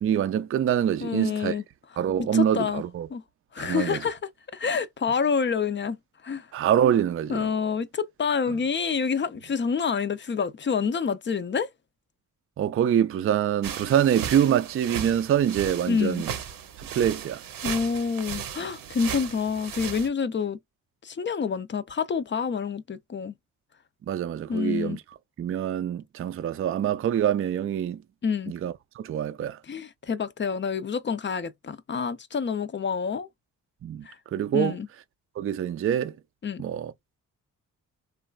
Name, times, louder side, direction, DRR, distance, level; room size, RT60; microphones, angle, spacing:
voice 1, 0.0-1.6 2.0-3.1 3.6-4.0 6.5-7.5 12.6-16.3 16.8-17.4 24.1-25.0 25.4-28.0 28.5-29.6 33.8-34.1 34.3-34.8 35.4-36.2 36.6-36.9, right 9 dB, 40° right, 0.4 m, -25 dB
voice 2, 1.0-1.6 2.2-2.8 3.1-3.2 3.5-4.2 4.5-6.0 6.2-6.5 7.3-11.7 15.9-16.2 17.6-20.6 21.0-23.3 24.5-25.0 28.2-28.5 29.7-33.3 34.1-34.2 34.5-34.9 36.4-36.6, left 6 dB, 35° left, 0.5 m, -27 dB
sound 1, 13.6-20.1, right 9 dB, 80° right, 0.7 m, -36 dB
3.1 x 2.3 x 2.3 m
cardioid pair, 60°, 34 cm